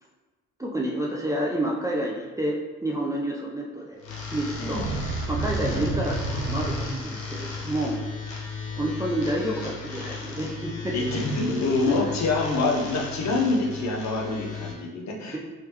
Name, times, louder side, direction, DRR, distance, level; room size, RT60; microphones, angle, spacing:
voice 1, 0.6-4.0 4.3-4.9 5.3-8.0 8.7-11.0 11.9-12.0 15.3-15.4, right 1 dB, 10° right, -3 dB, 0.4 m, -29 dB
sound 1, 4.0-14.7, left 5 dB, 80° left, 0.7 m, -35 dB
sound 2, 4.5-7.3, right 4 dB, 60° right, 0.7 m, -30 dB
voice 2, 4.6-5.0 5.6-5.9 10.9-15.4, left 3 dB, 45° left, -1 dB, 0.9 m, -26 dB
3.2 x 3.0 x 3.0 m, 1.3 s
hypercardioid pair, 45°, 38 cm